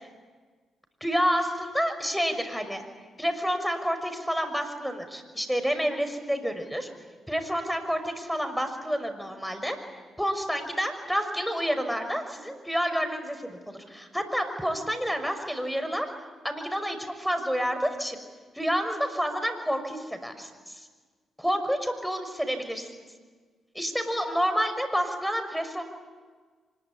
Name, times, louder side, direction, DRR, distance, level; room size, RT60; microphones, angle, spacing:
voice 1, 1.0-2.8 3.2-6.9 7.3-9.8 10.2-16.1 16.4-18.2 18.5-20.9 21.4-22.9 23.7-25.8, equal, ahead, 7 dB, 6.0 m, -29 dB
25.0 x 22.0 x 9.9 m, 1.4 s
hypercardioid pair, 45°, 0 cm